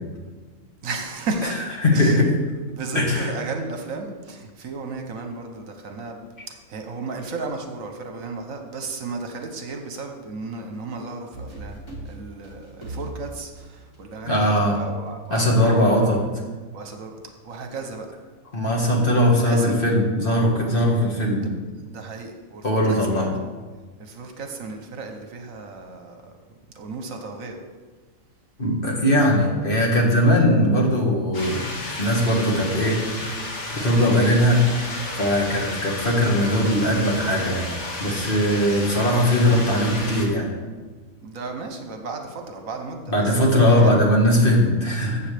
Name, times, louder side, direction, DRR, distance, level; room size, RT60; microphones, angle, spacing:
voice 1, 0.8-1.7 1.9-2.2 2.7-11.8 12.0-16.3 16.7-18.2 19.2-19.8 21.8-23.3 24.0-26.3 26.7-27.6 41.2-43.9, right 3 dB, 70° right, 4 dB, 1.3 m, -34 dB
voice 2, 1.8-2.3 3.0-3.3 14.3-14.8 15.3-16.2 18.5-21.5 22.6-23.3 28.6-33.3 33.7-34.6 35.1-37.7 38.0-40.5 43.1-45.3, equal, 40° left, -2 dB, 1.9 m, -20 dB
sound 1, 11.3-14.7, right 1 dB, 20° left, 2.2 m, -38 dB
sound 2, 31.3-40.3, left 2 dB, 55° left, 1.9 m, -32 dB
14.0 x 7.5 x 3.4 m, 1.3 s
omnidirectional pair, 1.5 m